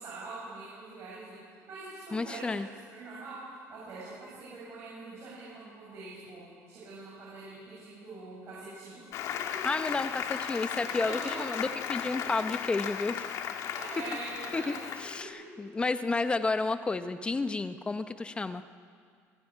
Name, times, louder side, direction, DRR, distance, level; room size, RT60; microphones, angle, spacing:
voice 1, 0.0-1.4 1.7-2.6 2.9-3.4 3.7-9.0 9.5-9.6 11.0-11.4 13.7-15.7, right 3 dB, 50° right, -7 dB, 7.3 m, -44 dB
voice 2, 2.1-2.7 9.6-13.3 14.5-18.6, left 3 dB, 15° left, 11 dB, 0.7 m, -31 dB
Applause, 9.1-15.2, left 8 dB, 60° left, 1.5 m, -36 dB
27.0 x 12.0 x 9.9 m, 2.1 s
cardioid pair, 140°, 6 cm